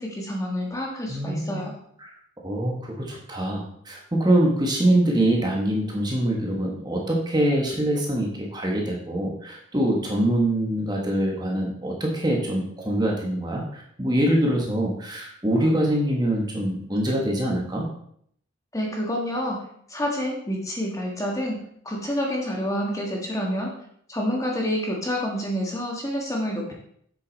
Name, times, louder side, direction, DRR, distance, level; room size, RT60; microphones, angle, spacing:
voice 1, 0.0-1.7 18.7-19.6 19.9-23.7 24.1-26.7, equal, 15° left, -1 dB, 1.4 m, -28 dB
voice 2, 1.1-1.6 2.0-2.1 2.4-17.9, right 1 dB, 20° right, -1 dB, 1.4 m, -24 dB
7.8 x 6.8 x 4.0 m, 0.66 s
head